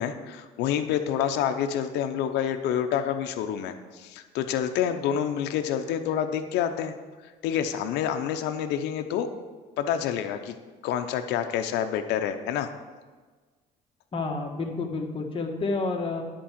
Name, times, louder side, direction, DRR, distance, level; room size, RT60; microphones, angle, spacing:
voice 1, 0.0-7.0 7.4-9.3 9.8-10.5 10.8-12.7, left 9 dB, 85° left, 8 dB, 0.7 m, -28 dB
voice 2, 14.1-16.2, left 3 dB, 30° left, 1 dB, 1.5 m, -29 dB
10.5 x 4.6 x 7.3 m, 1.4 s
cardioid pair, 110°, 17 cm